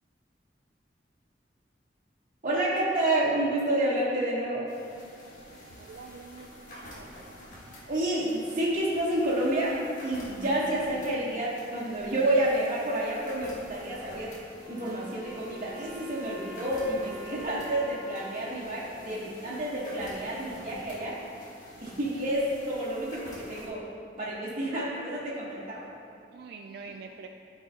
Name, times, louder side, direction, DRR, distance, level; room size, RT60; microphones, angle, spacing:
voice 1, 2.4-4.6 7.9-9.7 10.0-14.3 14.7-21.1 21.8-23.8 24.2-25.9, right 1 dB, 45° right, -11 dB, 1.2 m, -29 dB
sound 1, 4.7-23.7, equal, 45° left, 1.5 m, -48 dB
voice 2, 5.8-7.1 26.3-27.3, right 5 dB, 65° right, 3 dB, 0.3 m, -45 dB
Wind instrument woodwind instrument, 14.6-19.8, right 1 dB, 10° right, 1.6 m, -47 dB
13.0 x 4.7 x 2.8 m, 2.3 s
head